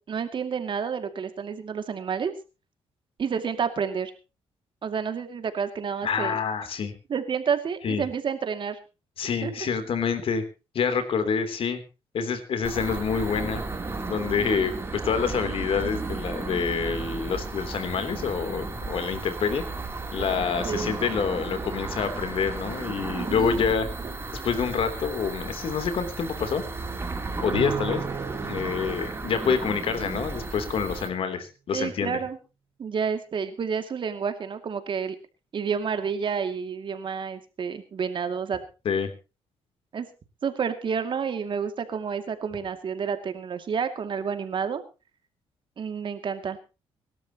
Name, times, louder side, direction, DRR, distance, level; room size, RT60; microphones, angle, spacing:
voice 1, 0.1-2.3 3.2-4.1 4.8-6.4 7.1-8.8 9.4-9.7 20.6-20.9 23.1-23.6 31.7-32.4 32.8-35.2 35.5-38.6 39.9-40.1 40.4-44.8 45.8-46.6, right 6 dB, 50° right, 8 dB, 2.4 m, -29 dB
voice 2, 6.0-6.9 7.8-8.0 9.2-10.4 10.7-11.8 12.1-13.6 14.1-19.6 20.1-23.9 24.4-26.6 27.4-28.0 28.4-32.2 38.8-39.1, left 6 dB, 60° left, 10 dB, 3.3 m, -27 dB
sound 1, 12.6-31.1, right 3 dB, 25° right, 3.3 m, -34 dB
Bowed string instrument, 27.5-30.2, right 8 dB, 90° right, 4.9 m, -35 dB
24.5 x 12.5 x 3.0 m, 0.30 s
cardioid pair, 90°, 11 cm